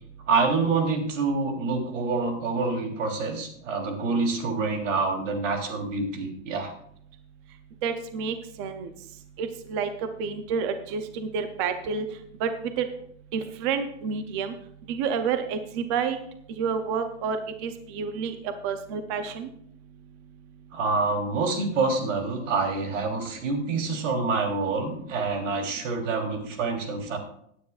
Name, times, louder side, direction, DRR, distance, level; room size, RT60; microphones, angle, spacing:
voice 1, 0.3-6.7 20.7-27.2, right 4 dB, 80° right, 3 dB, 3.3 m, -27 dB
voice 2, 7.8-8.9 9.4-9.9 10.2-12.1 12.4-12.5 12.8-12.9 13.3-14.5 14.9-16.2 16.6-18.4 18.6-19.5, right 6 dB, 25° right, 8 dB, 0.5 m, -29 dB
18.0 x 9.6 x 2.4 m, 0.69 s
supercardioid pair, 175°, 37 cm